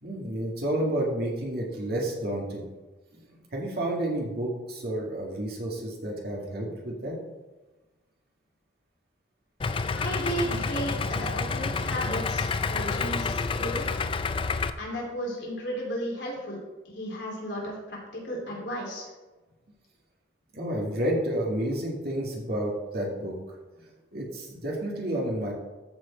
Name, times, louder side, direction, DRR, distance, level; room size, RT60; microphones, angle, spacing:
voice 1, 0.0-2.7 3.5-7.1 20.5-23.3 23.8-23.9 24.1-25.5, right 1 dB, 55° right, -2 dB, 2.1 m, -30 dB
Idling, 9.6-14.7, left 4 dB, 30° left, 0.3 m, -29 dB
voice 2, 9.9-13.8 14.8-16.6 16.9-19.1, equal, 65° left, -3 dB, 3.1 m, -34 dB
14.0 x 4.9 x 4.3 m, 1.2 s
head